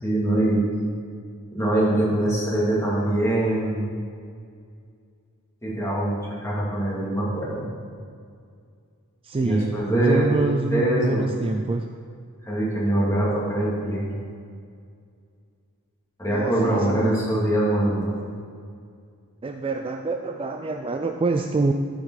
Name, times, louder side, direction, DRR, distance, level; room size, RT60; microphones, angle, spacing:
voice 1, 0.0-0.6 1.5-3.8 5.6-7.7 9.4-10.4 10.7-11.3 12.4-14.1 16.2-18.1, right 1 dB, 15° left, -7 dB, 2.6 m, -23 dB
voice 2, 9.2-11.8 16.3-17.2 19.4-21.7, right 3 dB, 25° right, 5 dB, 0.3 m, -26 dB
12.5 x 5.3 x 4.9 m, 2.2 s
head